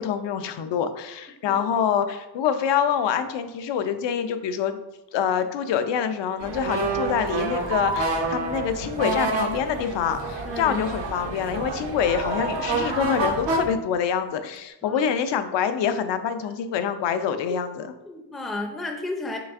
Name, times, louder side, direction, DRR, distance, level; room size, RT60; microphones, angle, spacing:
voice 1, 0.0-4.8 5.1-17.9, left 8 dB, 85° left, 9 dB, 0.5 m, -26 dB
sound 1, 6.4-13.6, right 3 dB, 85° right, 1.0 m, -28 dB
sound 2, 7.7-14.7, right 2 dB, 60° right, 0.6 m, -39 dB
voice 2, 10.4-10.8 14.8-15.0 18.1-19.4, left 2 dB, ahead, 3 dB, 0.4 m, -32 dB
6.0 x 3.3 x 2.4 m, 0.97 s
cardioid pair, 120°, 42 cm